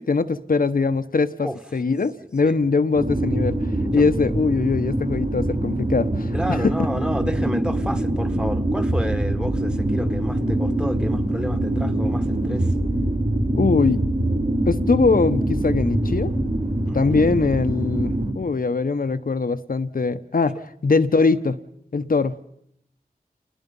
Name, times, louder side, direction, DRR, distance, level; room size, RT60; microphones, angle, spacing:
voice 1, 0.0-3.6 3.9-6.7 13.5-14.0 14.7-16.3 16.9-21.6 21.9-22.3, left 4 dB, 60° left, 0.9 m, -22 dB
sound 1, 3.0-18.3, right 1 dB, 55° right, 4.6 m, -24 dB
voice 2, 6.3-12.7 16.9-17.2, equal, 5° right, 1.5 m, -30 dB
28.5 x 20.5 x 5.4 m
wide cardioid pair, 75°, 16 cm